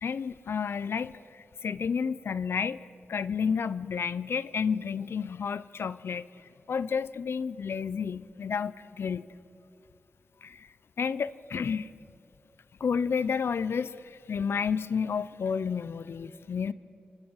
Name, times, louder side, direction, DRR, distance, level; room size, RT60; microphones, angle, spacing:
voice 1, 0.0-6.2 6.7-9.2 10.4-10.7 11.0-11.9 12.8-16.7, left 6 dB, 80° left, 17 dB, 0.5 m, -31 dB
26.0 x 16.0 x 6.3 m, 2.7 s
cardioid pair, 55°, 4 cm